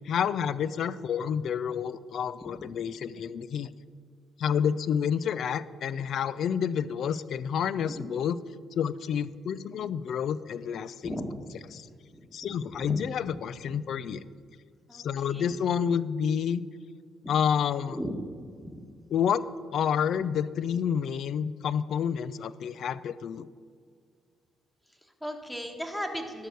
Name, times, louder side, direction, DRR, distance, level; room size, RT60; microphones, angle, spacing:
voice 1, 0.0-3.7 4.4-8.4 8.7-11.2 12.3-14.2 14.9-16.6 17.3-18.0 19.1-19.4 19.7-23.5, left 8 dB, 65° left, 17 dB, 0.4 m, -29 dB
voice 2, 11.0-11.3 12.1-13.4 13.7-13.8 14.1-14.2 14.9-15.5 17.2-17.3 17.8-18.9 24.9-26.5, equal, 5° left, 4 dB, 1.4 m, -38 dB
12.0 x 4.8 x 6.8 m, 2.1 s
cardioid pair, 90°, 0 cm